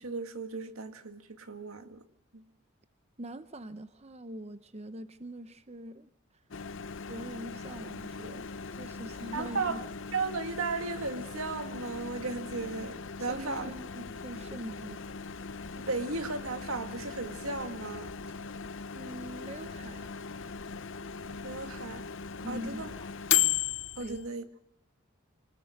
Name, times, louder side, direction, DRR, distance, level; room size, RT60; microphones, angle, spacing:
voice 1, 0.0-2.0 2.3-2.4 9.3-9.8 10.1-13.7 15.8-18.1 21.4-22.1 22.5-22.9 24.0-24.4, right 3 dB, 75° right, 1.9 m, -35 dB
voice 2, 3.2-6.4 7.1-9.8 13.2-15.1 18.9-20.1 22.4-22.9 24.0-24.2, right 1 dB, 30° right, 0.8 m, -43 dB
Microwave oven, 6.5-24.3, left 9 dB, 60° left, 0.8 m, -37 dB
25.5 x 20.0 x 6.5 m
head